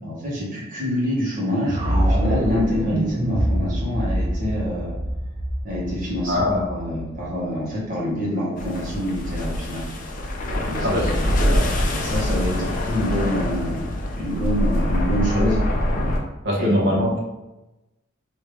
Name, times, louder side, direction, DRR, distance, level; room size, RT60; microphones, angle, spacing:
voice 1, 0.0-4.9 5.6-9.8 10.6-11.3 12.0-15.6 16.6-16.9, left 1 dB, 40° right, -6 dB, 1.2 m, -26 dB
sound 1, 1.6-7.7, right 1 dB, 25° right, 0.4 m, -25 dB
voice 2, 6.3-6.6 10.8-11.1 11.4-11.6 16.4-17.2, left 1 dB, 55° right, -3 dB, 0.9 m, -22 dB
sound 2, 8.6-16.2, left 1 dB, 40° left, 0.4 m, -24 dB
3.4 x 2.7 x 3.1 m, 0.98 s
head